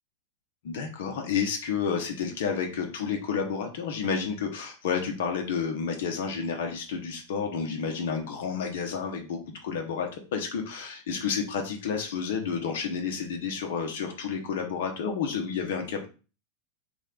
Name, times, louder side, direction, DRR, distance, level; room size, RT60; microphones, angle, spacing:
voice 1, 0.6-16.1, left 6 dB, 55° left, 3 dB, 0.9 m, -30 dB
4.0 x 3.2 x 3.8 m, 0.34 s
figure-of-eight pair, 90°, 0 cm